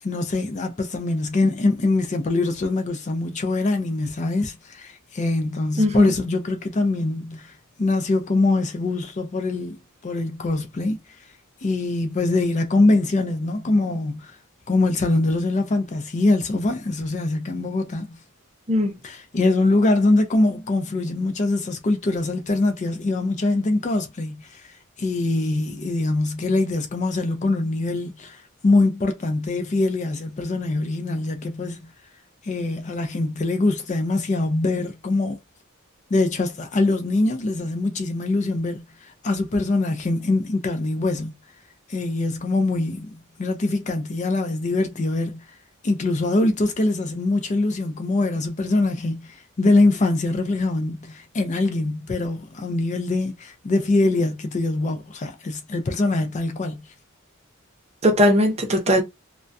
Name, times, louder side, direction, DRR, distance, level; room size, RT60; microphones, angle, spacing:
voice 1, 0.0-7.5 7.8-9.8 10.0-11.0 11.6-14.4 14.7-18.2 19.0-31.9 32.4-35.4 36.1-41.3 41.9-45.5 45.8-56.8, left 2 dB, 35° left, 0.4 m, -23 dB
voice 2, 5.8-6.1 18.7-19.0 58.0-59.0, equal, 30° right, 0.6 m, -18 dB
2.2 x 2.2 x 2.5 m
head